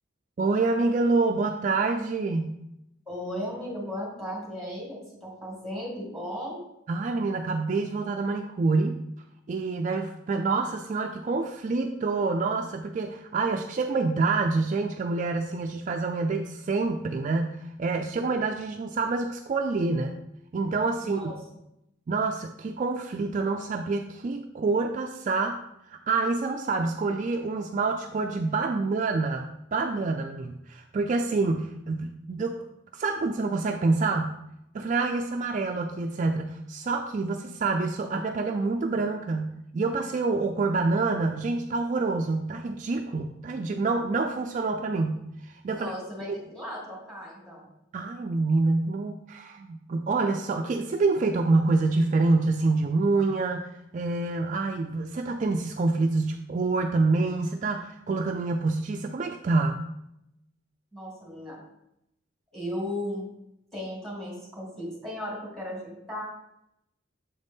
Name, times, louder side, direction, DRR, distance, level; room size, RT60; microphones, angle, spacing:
voice 1, 0.4-2.6 6.9-9.0 9.5-20.1 20.5-21.3 22.1-25.6 25.9-34.4 34.7-45.9 46.2-46.4 47.9-53.7 53.9-59.8, right 3 dB, 40° right, 4 dB, 0.3 m, -27 dB
voice 2, 3.1-6.6 21.0-21.3 45.7-47.7 60.9-61.6 62.5-63.2 63.7-66.2, left 1 dB, ahead, -4 dB, 2.0 m, -36 dB
7.2 x 4.0 x 3.5 m, 0.83 s
head